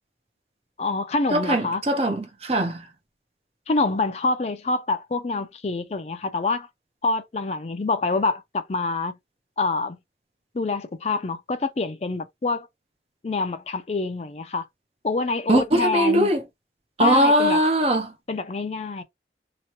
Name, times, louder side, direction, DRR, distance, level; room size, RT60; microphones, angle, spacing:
voice 1, 0.8-1.8 3.7-6.7 7.0-9.2 9.6-10.0 10.5-12.7 13.2-14.6 15.0-16.3 17.0-17.6 18.3-19.0, left 3 dB, 35° left, 0.4 m, -26 dB
voice 2, 1.3-2.8 15.5-16.4 17.0-18.1, right 1 dB, 35° right, 0.5 m, -20 dB
2.9 x 2.2 x 2.8 m
head